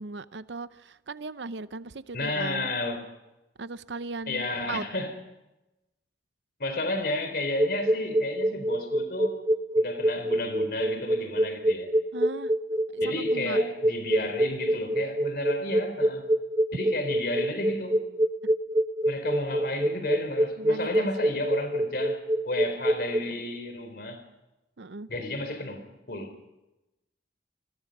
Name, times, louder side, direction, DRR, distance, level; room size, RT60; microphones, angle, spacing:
voice 1, 0.0-2.7 3.6-4.8 12.1-12.5 12.9-13.6 20.6-21.3 24.8-25.1, right 3 dB, 85° right, 0.7 m, -38 dB
voice 2, 2.1-3.0 4.3-5.1 6.6-9.4 9.7-11.9 13.0-16.3 16.7-18.0 19.1-22.2 22.4-24.2 25.1-26.3, left 2 dB, 60° left, 4.2 m, -32 dB
sound 1, 7.6-23.2, right 1 dB, 20° right, 0.8 m, -25 dB
28.0 x 21.0 x 5.5 m
head